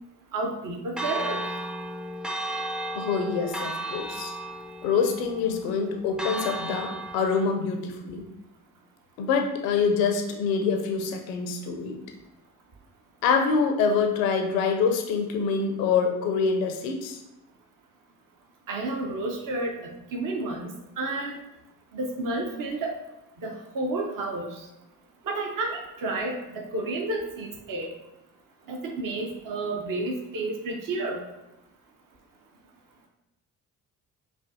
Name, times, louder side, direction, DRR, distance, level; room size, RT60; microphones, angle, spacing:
voice 1, 0.3-1.4 18.7-19.7 20.1-21.4 21.9-23.0 23.4-24.5 25.3-27.9 28.7-31.2, right 2 dB, 55° right, 2 dB, 0.8 m, -31 dB
Church bell, 1.0-7.4, right 1 dB, 5° right, 0.3 m, -34 dB
voice 2, 2.9-4.3 4.8-8.2 9.2-12.0 13.2-17.2, left 5 dB, 90° left, 4 dB, 0.5 m, -25 dB
5.6 x 2.4 x 2.6 m, 0.92 s
hypercardioid pair, 45°, 39 cm